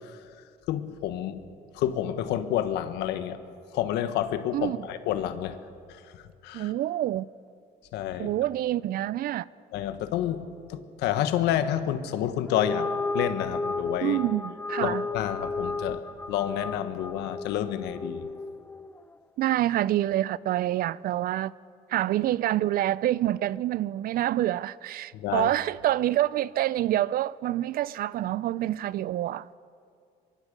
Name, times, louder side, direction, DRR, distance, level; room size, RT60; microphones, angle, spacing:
voice 1, 0.7-1.4 1.8-3.4 3.7-5.6 6.4-6.7 7.9-8.3 9.7-12.9 13.1-14.2 14.8-16.0 16.3-18.3 25.1-25.5, left 11 dB, 90° left, 1.3 m, -29 dB
voice 2, 4.5-4.9 6.5-7.3 8.2-9.4 14.0-15.0 19.4-21.5 21.9-29.5, right 13 dB, 60° right, 0.5 m, -27 dB
sound 1, 12.5-19.0, left 3 dB, 10° left, 0.4 m, -33 dB
24.0 x 23.0 x 5.3 m
cardioid pair, 110°, 17 cm